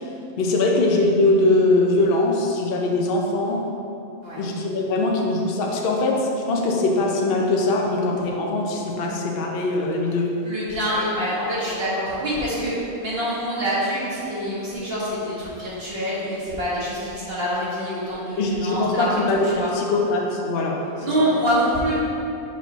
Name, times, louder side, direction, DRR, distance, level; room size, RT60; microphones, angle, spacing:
voice 1, 0.4-3.6 4.4-10.3 18.4-21.3, left 2 dB, 55° left, 0 dB, 0.7 m, -22 dB
voice 2, 10.4-19.7 21.0-21.9, equal, 45° right, -8 dB, 1.6 m, -25 dB
5.8 x 5.8 x 3.0 m, 2.8 s
omnidirectional pair, 1.5 m